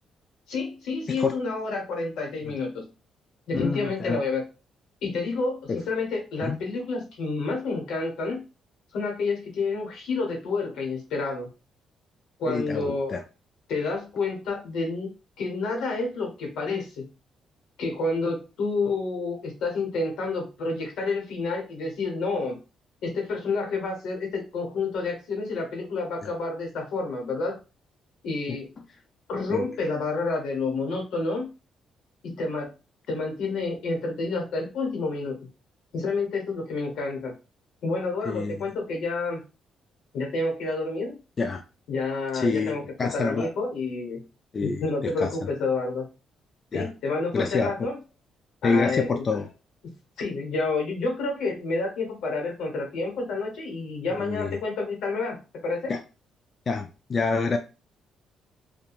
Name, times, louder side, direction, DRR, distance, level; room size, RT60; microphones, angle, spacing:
voice 1, 0.5-2.8 3.5-4.4 5.0-8.4 8.9-11.5 12.4-13.2 13.7-15.1 15.4-17.1 17.8-22.6 23.0-27.6 28.2-28.7 29.3-31.5 32.2-32.7 33.1-35.4 35.9-37.3 37.8-39.4 40.1-41.2 41.9-44.2 44.6-46.1 46.7-48.0 48.6-49.3 49.8-49.9 50.2-55.9, left 3 dB, 80° left, 2 dB, 0.9 m, -29 dB
voice 2, 3.5-4.2 5.7-5.8 6.4-6.6 12.5-13.2 26.2-26.3 28.5-28.6 29.5-29.7 38.2-38.6 41.4-41.6 42.3-43.5 44.5-44.8 45.2-45.5 46.7-46.9 47.3-47.9 48.6-49.5 54.2-54.6 55.9-56.0 56.7-57.6, left 4 dB, 40° left, 5 dB, 0.3 m, -27 dB
2.9 x 2.2 x 2.4 m, 0.31 s
cardioid pair, 90°, 0 cm